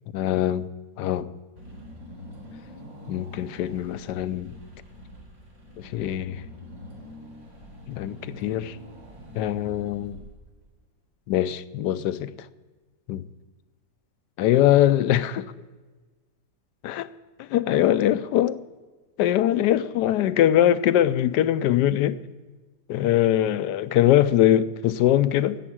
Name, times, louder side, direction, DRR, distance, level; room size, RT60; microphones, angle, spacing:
voice 1, 0.1-0.7 1.0-1.3 3.1-4.6 5.8-6.4 7.9-8.8 9.3-10.2 11.3-12.3 13.1-13.2 14.4-15.5 16.8-17.1 17.4-18.6 19.2-22.2 22.9-25.6, left 12 dB, 75° left, 1.1 m, -22 dB
Car / Engine, 1.6-10.7, equal, 80° right, 4.4 m, -44 dB
11.0 x 8.5 x 9.9 m
omnidirectional pair, 2.0 m